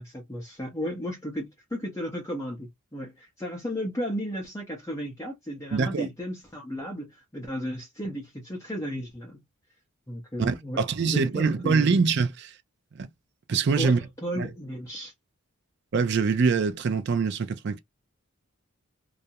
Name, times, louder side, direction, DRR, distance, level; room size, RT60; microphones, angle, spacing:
voice 1, 0.0-9.4 10.1-11.9 13.8-15.1, equal, 15° left, 0.7 m, -34 dB
voice 2, 5.7-6.1 10.4-12.5 13.0-13.1 13.5-14.0 14.4-14.5 15.9-17.8, right 5 dB, 50° right, 0.4 m, -24 dB
2.3 x 2.0 x 2.7 m
head